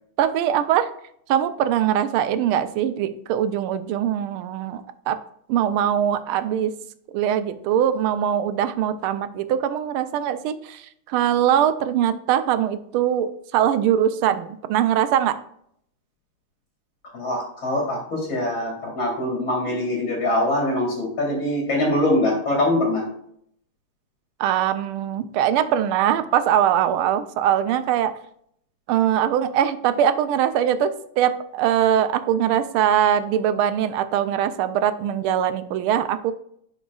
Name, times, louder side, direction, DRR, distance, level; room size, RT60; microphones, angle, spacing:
voice 1, 0.2-0.9 1.3-4.8 5.1-5.2 5.5-6.7 7.1-15.4 24.4-28.1 28.9-36.3, right 10 dB, 80° right, 12 dB, 1.5 m, -22 dB
voice 2, 17.1-23.0, left 1 dB, 65° left, -2 dB, 2.8 m, -23 dB
11.0 x 5.0 x 2.3 m, 0.68 s
omnidirectional pair, 2.4 m